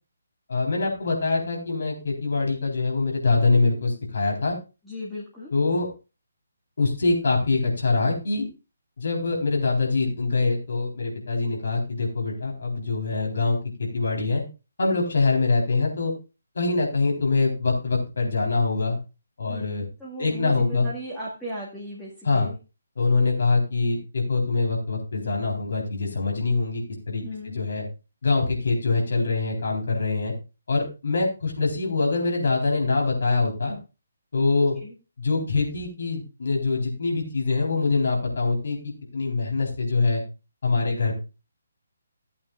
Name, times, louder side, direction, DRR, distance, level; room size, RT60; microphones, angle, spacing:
voice 1, 0.5-4.6 5.5-5.9 6.8-8.5 9.0-14.4 14.8-16.1 16.5-19.0 19.4-19.8 20.2-20.9 22.2-22.5 23.0-27.8 28.2-30.3 30.7-33.8 34.3-34.8 35.2-40.2 40.6-41.1, left 3 dB, 55° left, 0 dB, 4.0 m, -24 dB
voice 2, 4.8-5.5 19.5-22.6 27.2-27.6 34.8-34.9, equal, 5° left, -9 dB, 1.9 m, -36 dB
15.5 x 8.5 x 2.5 m, 0.30 s
figure-of-eight pair, 140°, 0 cm